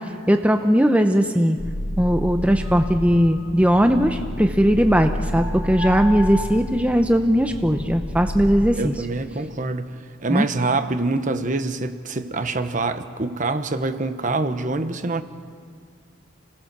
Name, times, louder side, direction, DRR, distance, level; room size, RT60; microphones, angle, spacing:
voice 1, 0.3-1.6 2.0-8.9 10.3-10.5, equal, 5° right, 6 dB, 0.7 m, -19 dB
sound 1, 1.6-8.7, left 1 dB, 80° left, 1.4 m, -30 dB
voice 2, 8.8-9.9 10.2-15.2, right 3 dB, 40° right, 9 dB, 1.0 m, -25 dB
27.5 x 18.0 x 6.8 m, 2.1 s
head